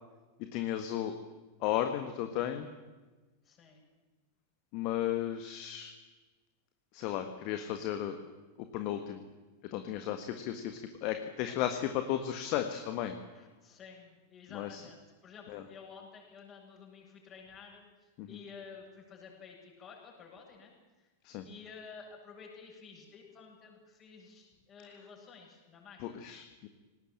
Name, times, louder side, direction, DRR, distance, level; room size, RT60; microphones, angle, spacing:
voice 1, 0.5-1.1 1.6-2.7 4.7-5.9 6.9-8.2 8.6-9.2 9.7-13.2 14.5-14.8 15.5-15.6 18.2-18.4 21.2-21.4 26.0-26.7, left 11 dB, 45° left, 7 dB, 1.5 m, -34 dB
voice 2, 3.4-3.8 11.5-11.9 13.3-21.1 21.4-26.2, left 5 dB, 25° left, 0 dB, 8.0 m, -52 dB
19.0 x 19.0 x 9.1 m, 1.2 s
figure-of-eight pair, 90°, 0 cm